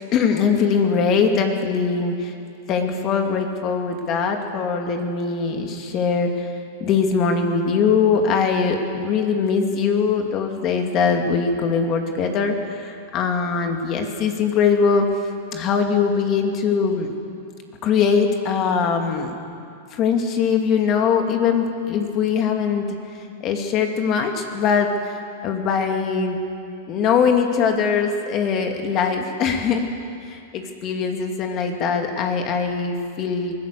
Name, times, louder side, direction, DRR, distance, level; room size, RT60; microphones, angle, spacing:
voice 1, 0.1-2.3 2.7-6.5 6.8-15.1 15.5-17.1 17.8-19.4 19.9-22.9 23.4-26.4 26.9-29.9 30.2-33.5, left 6 dB, 35° left, 4 dB, 2.5 m, -21 dB
23.5 x 16.5 x 6.8 m, 2.5 s
hypercardioid pair, 125°, 0 cm